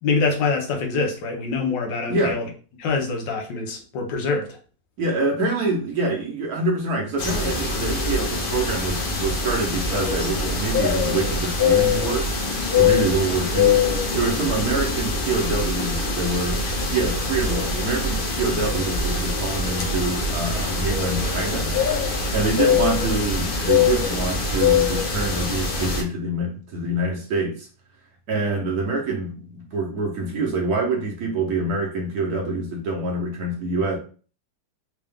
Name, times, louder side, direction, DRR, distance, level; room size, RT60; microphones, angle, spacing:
voice 1, 0.0-2.4 2.8-4.5, left 4 dB, 75° left, 2 dB, 1.4 m, -24 dB
voice 2, 5.0-12.3 12.7-13.8 14.1-21.7 22.3-27.7 28.3-34.0, right 2 dB, 60° right, 0 dB, 1.2 m, -26 dB
sound 1, 7.2-26.0, left 4 dB, 60° left, 0.5 m, -23 dB
3.8 x 2.4 x 3.4 m, 0.38 s
omnidirectional pair, 2.1 m